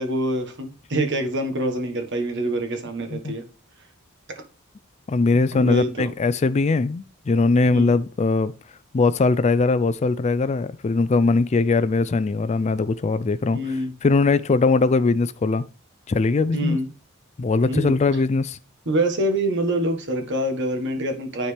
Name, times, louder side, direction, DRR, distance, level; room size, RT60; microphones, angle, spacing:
voice 1, 0.0-3.4 4.3-4.4 5.5-6.1 7.7-8.0 13.5-13.9 16.5-16.9 17.7-18.0 18.8-21.5, right 1 dB, 55° right, 1.5 m, -25 dB
voice 2, 5.1-8.5 8.9-13.8 14.0-15.7 16.1-16.8 17.4-18.6, left 3 dB, 30° left, 0.4 m, -20 dB
9.9 x 4.4 x 3.3 m
head